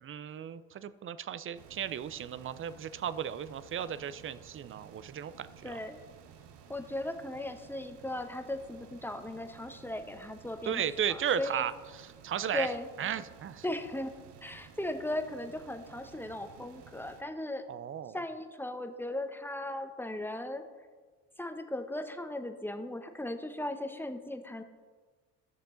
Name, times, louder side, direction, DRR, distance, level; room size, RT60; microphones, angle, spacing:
voice 1, 0.0-5.8 10.7-12.7 13.0-13.6 17.7-18.2, right 9 dB, 30° right, 15 dB, 0.5 m, -35 dB
sound 1, 1.5-17.2, right 8 dB, 60° right, 1.0 m, -55 dB
voice 2, 5.6-6.0 6.7-10.8 11.1-11.6 12.5-12.9 13.6-14.1 14.4-17.6 18.1-20.6 21.4-24.6, left 1 dB, 5° left, 7 dB, 0.9 m, -37 dB
14.0 x 6.6 x 3.9 m, 1.4 s
hypercardioid pair, 55°, 48 cm